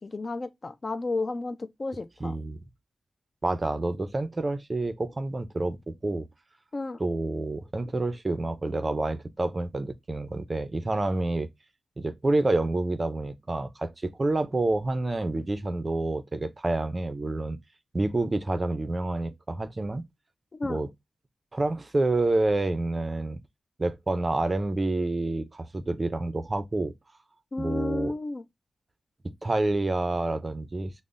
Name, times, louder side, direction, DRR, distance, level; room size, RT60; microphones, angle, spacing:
voice 1, 0.0-2.4 6.7-7.0 20.5-20.8 27.5-28.4, left 3 dB, 35° left, 0.3 m, -32 dB
voice 2, 2.2-2.6 3.4-6.3 7.0-11.5 12.0-17.6 17.9-20.0 20.6-20.9 21.5-23.4 23.8-26.9 27.6-28.1 29.4-30.9, right 2 dB, 30° right, 0.4 m, -28 dB
5.3 x 2.0 x 2.4 m
wide cardioid pair, 125°, 0 cm